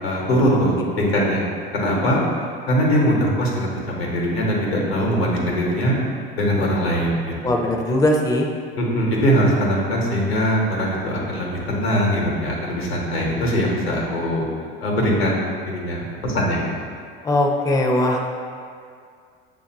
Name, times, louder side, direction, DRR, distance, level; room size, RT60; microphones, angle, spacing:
voice 1, 0.0-1.5 1.7-2.2 2.7-6.0 6.3-7.6 8.8-14.4 14.8-16.6, equal, 90° left, -2 dB, 1.0 m, -21 dB
voice 2, 7.4-8.5 17.2-18.3, left 1 dB, 10° left, 1 dB, 0.4 m, -20 dB
6.9 x 2.6 x 2.8 m, 2.2 s
hypercardioid pair, 75°, 30 cm